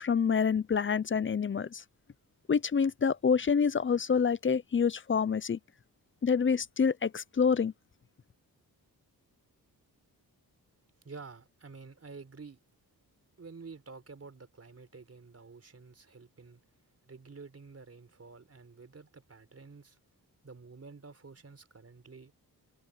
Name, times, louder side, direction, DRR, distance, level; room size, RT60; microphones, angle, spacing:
voice 1, 0.0-1.8 2.5-5.6 6.2-7.7, left 6 dB, 30° left, 0.6 m, -27 dB
voice 2, 11.0-12.6 13.4-16.6 17.0-20.0 20.4-22.3, right 4 dB, 40° right, 4.3 m, -50 dB
wide cardioid pair, 95°, 38 cm